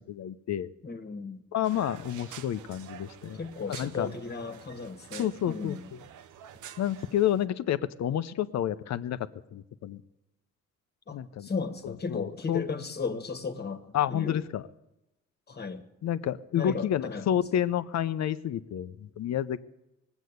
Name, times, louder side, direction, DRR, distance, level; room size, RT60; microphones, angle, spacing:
voice 1, 0.1-0.7 1.5-3.4 3.7-4.1 5.2-6.0 6.8-10.0 11.1-11.5 11.8-12.7 13.9-14.7 16.0-19.6, left 10 dB, 60° left, 13 dB, 0.7 m, -30 dB
voice 2, 0.8-1.4 3.3-5.8 11.1-13.8 14.1-14.4 15.5-15.8 16.5-17.4, left 4 dB, 35° left, 8 dB, 1.4 m, -35 dB
sound 1, 1.6-7.5, right 10 dB, 80° right, 0.8 m, -48 dB
19.0 x 8.1 x 8.0 m, 0.91 s
cardioid pair, 90°, 30 cm